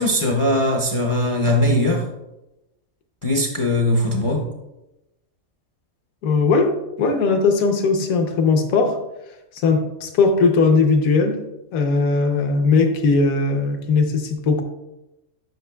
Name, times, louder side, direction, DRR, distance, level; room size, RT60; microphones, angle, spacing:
voice 1, 0.0-2.1 3.2-4.5, left 1 dB, 45° left, 1 dB, 0.4 m, -20 dB
voice 2, 6.2-6.7 7.0-9.0 9.6-11.4 11.7-14.6, left 4 dB, 75° left, 5 dB, 1.2 m, -18 dB
9.3 x 5.9 x 2.2 m, 0.94 s
omnidirectional pair, 1.5 m